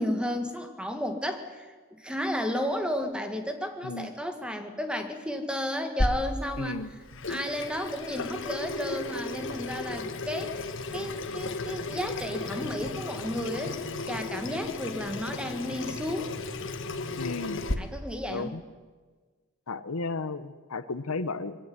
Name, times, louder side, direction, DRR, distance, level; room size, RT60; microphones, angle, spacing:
voice 1, 0.0-6.8 7.3-13.8 14.1-16.3 17.8-18.5, equal, 5° right, 6 dB, 1.9 m, -33 dB
voice 2, 3.8-4.1 6.6-6.9 17.2-17.7 18.3-18.6 19.7-21.6, left 3 dB, 80° left, 14 dB, 1.0 m, -34 dB
Water tap faucet / Sink (filling or washing), 6.0-17.7, left 2 dB, 60° left, 1.5 m, -34 dB
22.5 x 17.5 x 9.6 m, 1.4 s
head